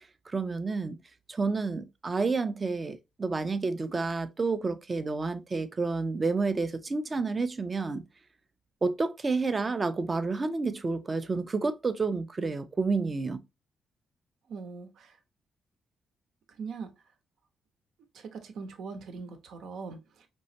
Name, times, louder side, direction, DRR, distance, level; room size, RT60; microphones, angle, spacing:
voice 1, 0.3-1.0 1.3-8.1 8.8-13.4, right 3 dB, 25° right, 0.5 m, -30 dB
voice 2, 14.5-15.2 16.6-16.9 18.1-20.3, right 5 dB, 70° right, 1.0 m, -41 dB
5.4 x 3.1 x 2.8 m
cardioid pair, 160°, 0 cm